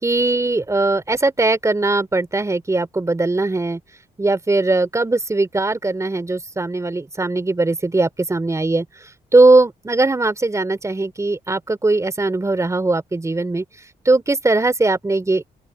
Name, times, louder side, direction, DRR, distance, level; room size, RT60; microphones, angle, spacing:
voice 1, 0.0-3.8 4.2-8.9 9.3-13.6 14.0-15.5, right 2 dB, 20° right, 4.1 m, -19 dB
open air
cardioid pair, 85°, 16 cm